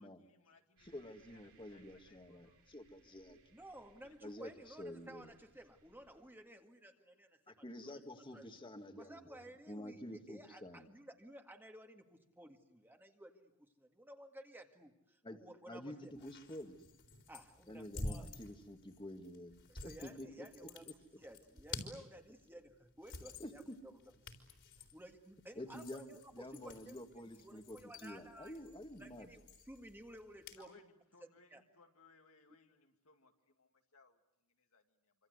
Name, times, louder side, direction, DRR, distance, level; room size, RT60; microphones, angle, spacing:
voice 1, 0.0-1.4 1.7-2.7 2.9-3.0 3.9-4.2 30.6-35.1, left 4 dB, 75° left, 4 dB, 2.5 m, -67 dB
voice 2, 0.8-3.4 4.2-5.3 7.5-10.9 15.2-16.8 17.7-20.5 23.4-23.8 25.6-29.3, left 1 dB, 25° left, 6 dB, 2.0 m, -49 dB
sound 1, 0.8-6.3, right 3 dB, 70° right, 6.9 m, -70 dB
voice 3, 3.5-8.0 8.3-8.6 9.0-16.1 17.3-18.3 19.7-24.0 24.8-28.6 29.0-30.8 31.5-31.6, right 1 dB, 10° right, 4 dB, 1.9 m, -55 dB
sound 2, 16.1-30.7, left 2 dB, 60° left, 3.9 m, -51 dB
26.5 x 25.5 x 8.0 m, 0.76 s
head